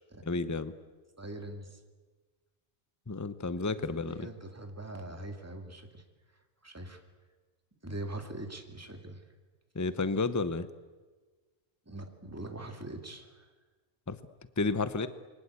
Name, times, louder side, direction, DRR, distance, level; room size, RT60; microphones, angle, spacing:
voice 1, 0.2-0.7 3.1-4.3 9.7-10.7 14.1-14.2 14.6-15.1, left 3 dB, 15° left, 12 dB, 0.9 m, -31 dB
voice 2, 1.2-1.8 3.8-6.0 6.6-7.0 7.8-9.2 11.9-13.5, right 1 dB, 15° right, 4 dB, 2.4 m, -42 dB
28.0 x 23.5 x 8.4 m, 1.3 s
omnidirectional pair, 1.2 m